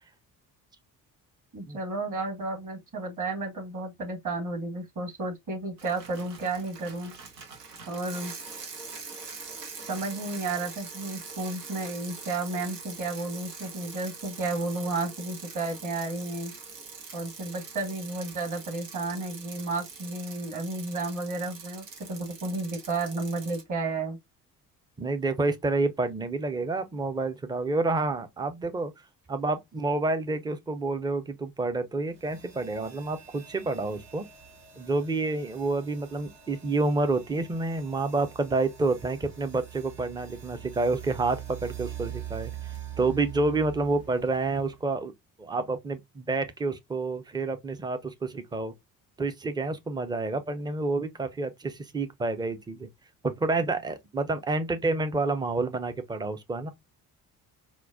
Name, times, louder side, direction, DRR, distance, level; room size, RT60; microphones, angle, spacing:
voice 1, 1.5-7.1 7.9-8.3 9.9-16.5 17.1-24.2, right 3 dB, 40° right, 1.7 m, -32 dB
Bicycle, 5.8-23.6, right 5 dB, 85° right, 0.7 m, -43 dB
voice 2, 25.0-28.9 29.3-34.3 34.8-42.5 43.0-45.1 45.4-48.7 49.2-52.9 53.2-56.7, right 3 dB, 10° right, 0.4 m, -29 dB
sound 1, 32.1-45.0, right 11 dB, 70° right, 1.5 m, -44 dB
4.4 x 2.1 x 2.5 m
figure-of-eight pair, 45°, 48 cm